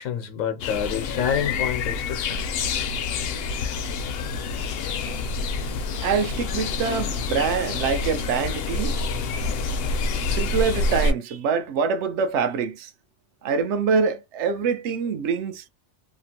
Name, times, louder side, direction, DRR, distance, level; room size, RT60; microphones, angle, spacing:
voice 1, 0.0-2.5, left 8 dB, 80° left, 1.0 m, -28 dB
sound 1, 0.6-11.1, left 3 dB, 60° left, 0.7 m, -27 dB
voice 2, 6.0-9.0 10.3-12.9 13.4-15.6, right 5 dB, 65° right, 0.8 m, -25 dB
2.9 x 2.4 x 2.8 m
omnidirectional pair, 1.3 m